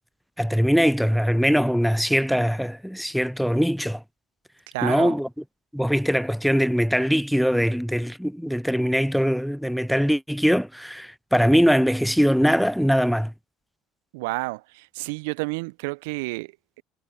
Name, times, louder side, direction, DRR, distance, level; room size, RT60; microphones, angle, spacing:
voice 1, 0.4-4.0 4.8-5.3 5.7-13.3, equal, ahead, 0.4 m, -22 dB
voice 2, 4.7-5.2 14.1-16.8, right 25 dB, 75° right, 0.6 m, -30 dB
hypercardioid pair, 70°, 0 cm